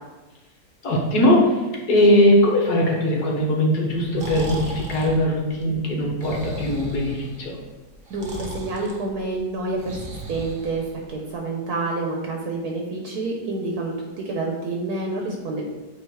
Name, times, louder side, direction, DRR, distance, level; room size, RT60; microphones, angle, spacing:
voice 1, 0.8-7.6, left 1 dB, 65° left, -1 dB, 1.7 m, -20 dB
Breathing, 3.9-11.3, right 1 dB, 40° right, 1.0 m, -36 dB
voice 2, 8.1-15.7, right 2 dB, 65° right, 0 dB, 1.3 m, -28 dB
8.2 x 2.9 x 4.7 m, 1.1 s
omnidirectional pair, 1.8 m